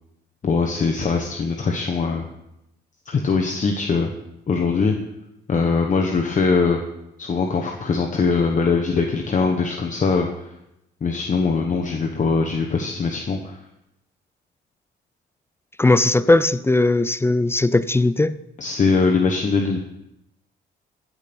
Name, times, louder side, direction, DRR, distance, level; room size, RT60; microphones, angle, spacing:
voice 1, 0.4-2.2 3.1-4.1 4.5-4.9 5.5-6.8 7.2-10.5 11.0-13.6 18.6-19.8, left 4 dB, 40° left, 1.1 m, -21 dB
voice 2, 15.8-18.4, left 2 dB, 10° left, 0.4 m, -18 dB
16.0 x 5.3 x 6.1 m
cardioid pair, 90°, 20 cm